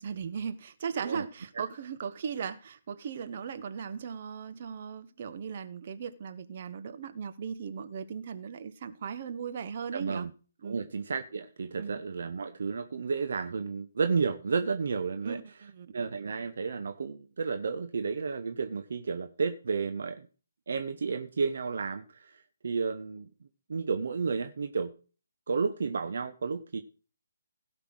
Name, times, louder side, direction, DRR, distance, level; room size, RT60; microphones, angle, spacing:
voice 1, 0.0-10.3 10.6-10.9 11.8-12.0 15.2-15.9, right 7 dB, 40° right, 1.3 m, -38 dB
voice 2, 9.9-10.3 10.6-15.4 15.9-20.3 20.7-23.3 23.7-24.9 25.5-26.8, right 5 dB, 55° right, 1.0 m, -32 dB
17.0 x 5.9 x 6.2 m
figure-of-eight pair, 145°, 0 cm